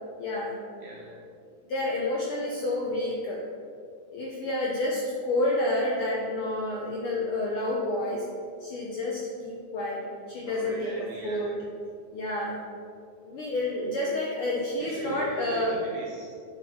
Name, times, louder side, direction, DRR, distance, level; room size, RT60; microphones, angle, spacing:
voice 1, 0.2-0.5 1.7-3.4 4.1-8.3 8.6-11.6 12.1-12.6 13.2-15.8, left 1 dB, 70° left, -3 dB, 1.3 m, -29 dB
voice 2, 0.8-1.2 10.5-11.5 14.8-16.4, right 2 dB, 70° right, -4 dB, 2.1 m, -40 dB
8.0 x 5.6 x 4.2 m, 2.4 s
omnidirectional pair, 3.4 m